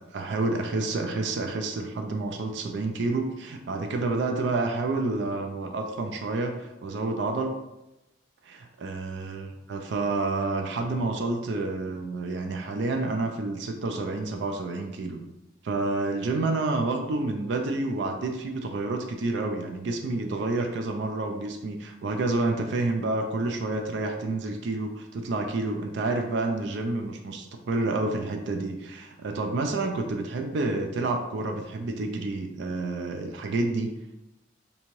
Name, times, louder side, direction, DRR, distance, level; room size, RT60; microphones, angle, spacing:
voice 1, 0.0-7.6 8.4-15.2 15.6-33.9, right 2 dB, 60° right, 4 dB, 0.3 m, -29 dB
3.4 x 2.8 x 3.0 m, 0.94 s
head